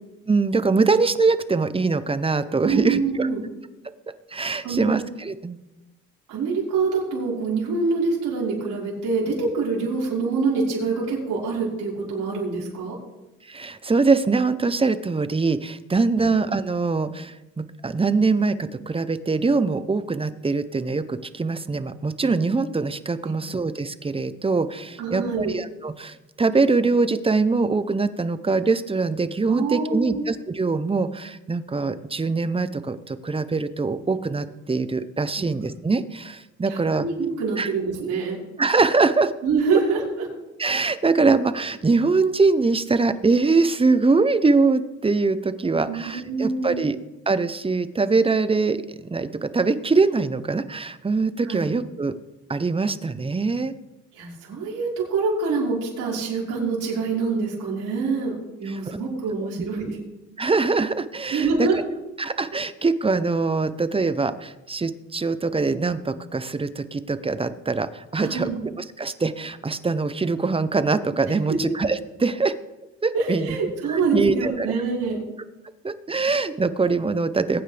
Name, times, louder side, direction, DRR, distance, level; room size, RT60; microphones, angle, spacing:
voice 1, 0.3-3.3 4.3-5.6 13.5-37.1 37.6-37.7 38.6-39.3 40.6-47.0 47.3-52.1 52.5-53.7 58.7-59.0 60.4-61.7 62.2-72.5 73.0-73.5 73.9-74.7 75.8-77.6, right 4 dB, 20° right, 12 dB, 0.8 m, -23 dB
voice 2, 2.6-3.4 4.6-4.9 6.3-13.0 16.1-16.3 23.2-23.3 25.0-25.5 29.5-30.2 35.4-35.5 36.7-38.4 39.4-40.3 45.9-46.9 51.4-51.7 54.1-60.0 61.3-61.8 68.2-68.6 71.3-71.6 73.1-75.2, right 4 dB, 80° right, -6 dB, 5.2 m, -25 dB
21.5 x 9.3 x 3.4 m, 1.0 s
cardioid pair, 90°, 30 cm